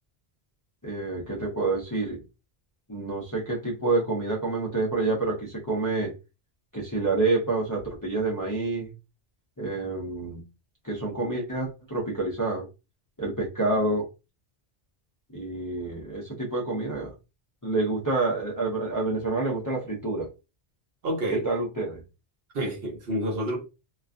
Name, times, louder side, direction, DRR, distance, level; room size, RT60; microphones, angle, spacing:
voice 1, 0.8-2.2 2.9-6.2 6.7-8.9 9.6-10.4 10.8-12.7 13.2-14.1 15.3-17.1 17.6-20.3 21.3-22.0, right 3 dB, 25° left, 0.5 m, -28 dB
voice 2, 21.0-21.4 22.5-23.6, right 1 dB, 65° right, 1.0 m, -28 dB
2.3 x 2.3 x 2.4 m
omnidirectional pair, 1.1 m